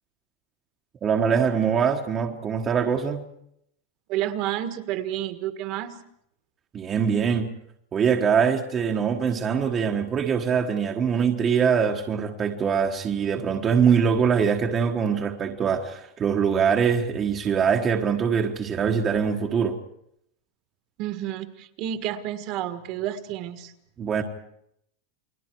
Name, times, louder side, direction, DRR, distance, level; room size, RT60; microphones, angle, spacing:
voice 1, 1.0-3.2 6.7-7.5 7.9-19.7 24.0-24.2, right 7 dB, 20° right, 2 dB, 1.4 m, -23 dB
voice 2, 4.1-6.0 21.0-23.7, right 12 dB, 35° right, 10 dB, 1.6 m, -30 dB
30.0 x 22.0 x 4.7 m, 0.73 s
supercardioid pair, 175°, 0 cm